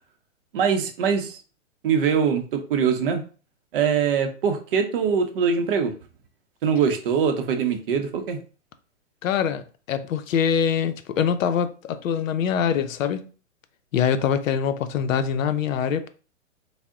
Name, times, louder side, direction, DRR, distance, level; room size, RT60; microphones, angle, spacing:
voice 1, 0.5-1.4 1.8-3.2 3.7-5.9 6.6-8.4, right 6 dB, 45° right, 0.6 m, -23 dB
voice 2, 9.2-13.3 13.9-16.1, left 7 dB, 75° left, 0.6 m, -24 dB
3.5 x 2.0 x 3.6 m
hypercardioid pair, 150°, 39 cm